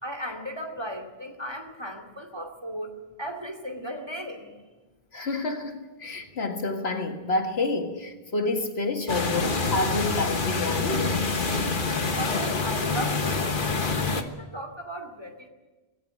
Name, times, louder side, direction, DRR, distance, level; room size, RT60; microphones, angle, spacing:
voice 1, 0.0-4.5 12.1-13.7 13.9-15.5, equal, 25° right, 2.5 m, -36 dB
voice 2, 5.1-11.4, left 2 dB, 85° left, 2.1 m, -29 dB
sound 1, 9.1-14.2, left 3 dB, 55° left, 1.5 m, -26 dB
18.0 x 16.5 x 8.9 m
omnidirectional pair, 1.0 m